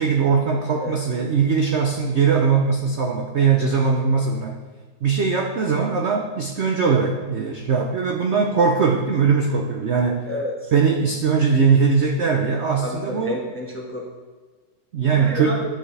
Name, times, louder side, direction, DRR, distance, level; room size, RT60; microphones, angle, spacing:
voice 1, 0.0-4.5 5.0-10.2 10.7-13.4 14.9-15.6, right 5 dB, 60° right, 2 dB, 0.7 m, -20 dB
voice 2, 10.2-10.7 12.8-14.1 15.1-15.6, equal, 10° left, -1 dB, 0.8 m, -30 dB
11.5 x 6.9 x 3.3 m, 1.4 s
omnidirectional pair, 2.0 m